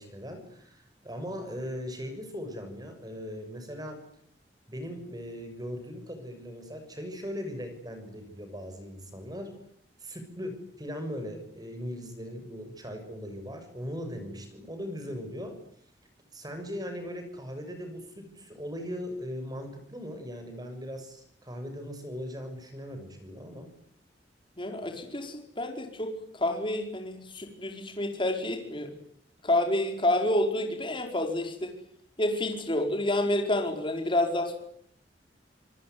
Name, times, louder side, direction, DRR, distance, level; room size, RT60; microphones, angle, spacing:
voice 1, 0.0-4.0 4.7-9.6 10.0-15.6 16.3-23.7, equal, 20° right, 7 dB, 6.6 m, -39 dB
voice 2, 24.6-28.9 29.4-31.7 32.2-34.5, left 1 dB, 30° left, 3 dB, 5.0 m, -29 dB
27.5 x 20.0 x 9.5 m, 0.67 s
head